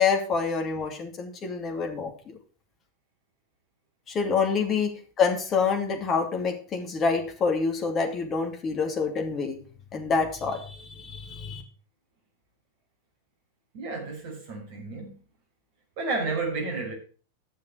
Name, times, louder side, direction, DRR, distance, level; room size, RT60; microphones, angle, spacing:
voice 1, 0.0-2.1 4.1-9.6 9.9-11.6, left 5 dB, 25° left, 2.7 m, -27 dB
voice 2, 13.7-15.2 16.0-16.9, right 3 dB, 45° right, 5.5 m, -31 dB
11.5 x 7.1 x 6.5 m
figure-of-eight pair, 90°, 0 cm